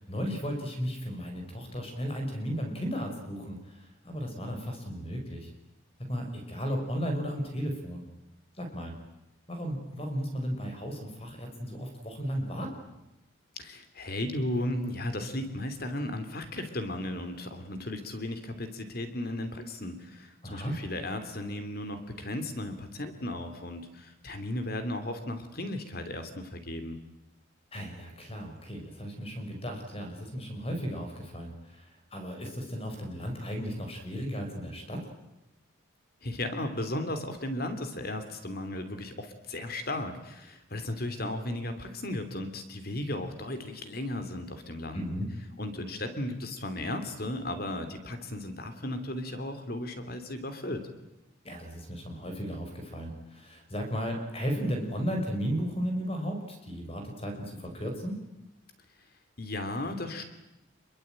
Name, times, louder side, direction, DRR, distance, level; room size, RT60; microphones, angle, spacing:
voice 1, 0.0-5.5 6.1-8.1 8.6-8.9 9.5-12.7 20.4-20.8 27.7-35.1 44.9-45.3 51.4-58.2, equal, 30° left, 4 dB, 5.1 m, -35 dB
voice 2, 13.6-27.0 36.2-45.0 45.6-50.8 59.4-60.2, left 1 dB, 50° left, 8 dB, 3.1 m, -35 dB
27.0 x 23.0 x 9.0 m, 0.94 s
head